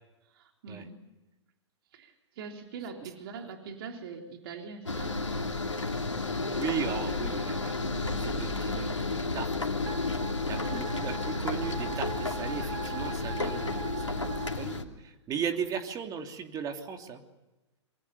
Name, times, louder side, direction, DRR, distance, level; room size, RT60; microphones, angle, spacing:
voice 1, 0.3-1.0 1.9-5.2 6.8-7.4 10.6-10.8, right 5 dB, 55° right, 4 dB, 3.5 m, -43 dB
sound 1, 4.9-14.8, left 3 dB, 90° left, 2.8 m, -32 dB
voice 2, 6.5-7.9 8.2-9.7 10.4-17.2, right 7 dB, 25° right, 6 dB, 3.0 m, -37 dB
Wind instrument woodwind instrument, 9.8-14.6, right 4 dB, 75° right, 5.1 m, -41 dB
26.5 x 24.5 x 7.0 m, 1.1 s
figure-of-eight pair, 110°, 15 cm